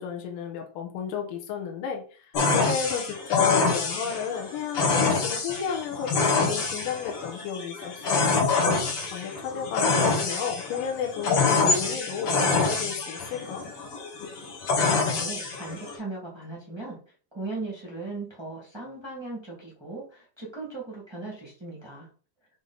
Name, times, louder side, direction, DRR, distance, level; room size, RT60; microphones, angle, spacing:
voice 1, 0.0-8.3 9.1-13.6, left 7 dB, 70° left, 2 dB, 2.5 m, -32 dB
sound 1, 2.3-16.0, left 4 dB, 50° left, 1.9 m, -26 dB
voice 2, 14.7-17.0 17.3-22.1, right 3 dB, 20° right, -4 dB, 0.7 m, -38 dB
7.1 x 3.4 x 3.9 m, 0.40 s
omnidirectional pair, 4.2 m